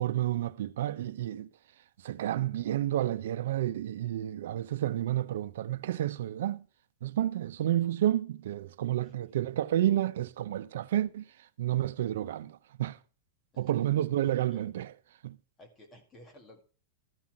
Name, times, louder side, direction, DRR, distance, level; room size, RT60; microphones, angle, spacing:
voice 1, 0.0-1.5 2.0-6.7 7.0-13.0 13.6-14.9 15.2-15.4, right 12 dB, 70° right, 0.8 m, -30 dB
voice 2, 14.2-14.7 15.6-16.6, left 1 dB, 15° left, 2.0 m, -54 dB
13.0 x 5.7 x 7.6 m
supercardioid pair, 165°, 0 cm